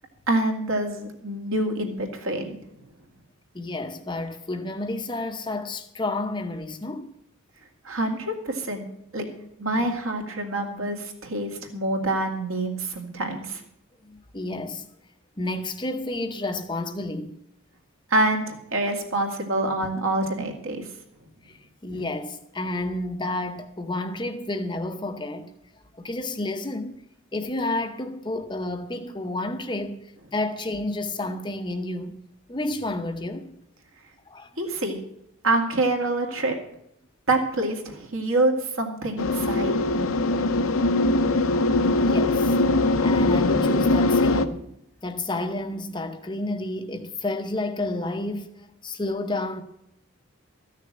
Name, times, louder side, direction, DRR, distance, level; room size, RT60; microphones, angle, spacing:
voice 1, 0.3-2.6 7.8-8.8 9.1-9.3 9.6-13.6 18.1-20.9 34.6-35.0 35.4-36.6 37.3-40.2, right 2 dB, 65° right, 2.2 m, -26 dB
voice 2, 3.5-7.1 9.7-9.9 14.0-14.9 15.4-17.4 21.4-25.5 26.0-27.0 27.3-30.0 30.3-32.1 32.5-33.5 34.3-34.5 41.9-42.6 43.0-44.6 45.0-48.5 48.8-49.6, left 2 dB, 20° left, 0.7 m, -30 dB
sound 1, 39.2-44.5, left 2 dB, 65° left, 0.8 m, -21 dB
13.5 x 6.6 x 8.7 m
head